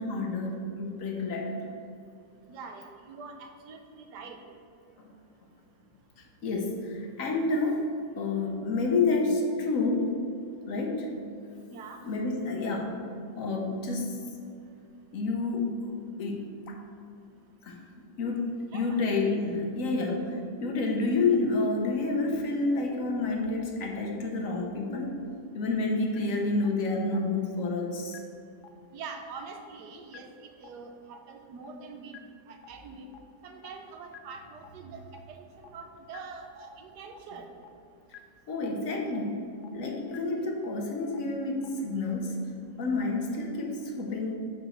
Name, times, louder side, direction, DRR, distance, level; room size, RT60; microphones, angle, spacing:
voice 1, 0.0-1.6 5.0-5.1 6.4-7.8 8.1-10.1 10.7-11.1 12.0-12.9 13.4-14.2 15.1-16.8 17.6-17.8 18.2-25.1 25.5-28.2 38.5-42.3 42.8-44.3, left 3 dB, 55° left, 1 dB, 1.2 m, -29 dB
voice 2, 2.5-4.4 11.7-12.0 18.7-19.0 28.9-32.2 32.5-33.1 33.4-37.5, right 4 dB, 70° right, 4 dB, 1.3 m, -44 dB
sound 1, 26.1-26.2 26.6-26.7 27.1-27.2 27.6-27.7 28.1-28.2 28.6-28.7 29.1-29.2 29.6-29.7 30.1-30.2 30.6-30.7 31.1-31.2 31.6-31.7 32.1-32.2 32.6-32.7 33.1-33.2 33.6-33.7 34.1-34.2 34.6-34.7 35.1-35.2 35.6-35.7 36.1-36.2 36.6-36.7 37.1-37.2 37.6-37.7 38.1-38.2 38.6-38.7 39.1-39.2 39.6-39.7 40.1-40.2 40.6-40.7 41.1-41.2 41.6-41.7, left 12 dB, 85° left, 0.6 m, -47 dB
5.3 x 5.2 x 6.4 m, 2.4 s
omnidirectional pair, 1.9 m